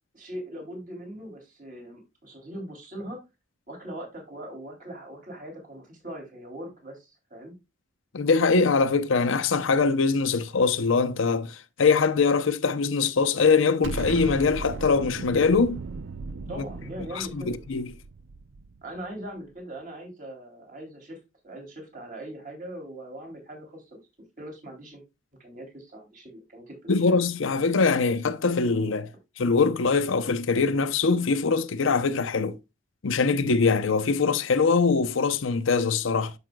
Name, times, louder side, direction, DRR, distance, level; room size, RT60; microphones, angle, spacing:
voice 1, 0.1-3.2 3.7-7.5 16.5-17.5 18.8-21.2 21.4-24.0 24.4-25.0 25.4-26.9, right 1 dB, 40° right, 3.0 m, -40 dB
voice 2, 8.1-15.8 16.6-16.7 17.1-17.9 26.9-29.1 29.4-32.6 33.0-36.3, left 4 dB, 70° left, 0.6 m, -23 dB
Explosion, 13.8-19.0, right 3 dB, 65° right, 0.4 m, -37 dB
12.0 x 5.0 x 2.2 m
head